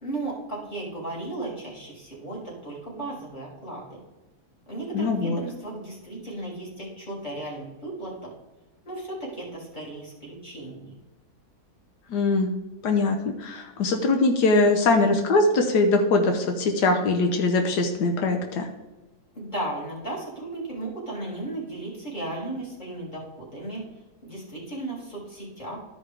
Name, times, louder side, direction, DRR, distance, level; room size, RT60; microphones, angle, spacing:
voice 1, 0.0-4.0 4.7-8.3 8.8-10.9 19.3-23.8 24.2-25.8, right 2 dB, 25° left, -6 dB, 3.1 m, -35 dB
voice 2, 4.9-5.4 12.1-12.5 12.8-18.7, left 3 dB, 85° left, 3 dB, 1.4 m, -22 dB
13.0 x 5.2 x 3.4 m, 1.1 s
omnidirectional pair, 1.7 m